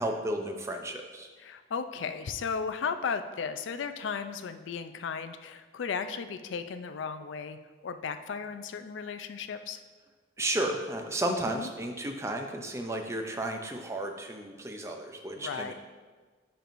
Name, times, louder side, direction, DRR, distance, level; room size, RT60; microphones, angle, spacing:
voice 1, 0.0-1.3 10.4-15.7, right 1 dB, 15° right, 4 dB, 0.4 m, -33 dB
voice 2, 1.4-7.6 7.8-9.8 11.3-11.7 15.4-15.7, left 6 dB, 80° left, 10 dB, 0.4 m, -35 dB
10.0 x 4.5 x 2.6 m, 1.4 s
head